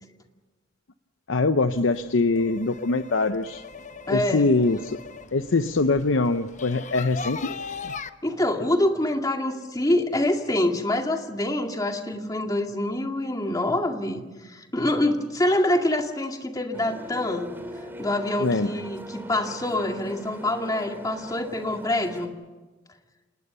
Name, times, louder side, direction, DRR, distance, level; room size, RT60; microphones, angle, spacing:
voice 1, 1.3-3.6 4.1-5.0 5.3-7.5 7.8-7.9 18.4-18.7, left 3 dB, 90° left, 10 dB, 0.7 m, -23 dB
sound 1, 1.7-8.1, left 5 dB, 40° left, 0.9 m, -40 dB
voice 2, 4.1-4.4 8.2-17.5 18.0-22.3, left 1 dB, 20° left, 3 dB, 2.1 m, -25 dB
sound 2, 16.7-22.3, equal, 10° right, 2.3 m, -40 dB
27.5 x 20.0 x 6.8 m, 1.2 s
head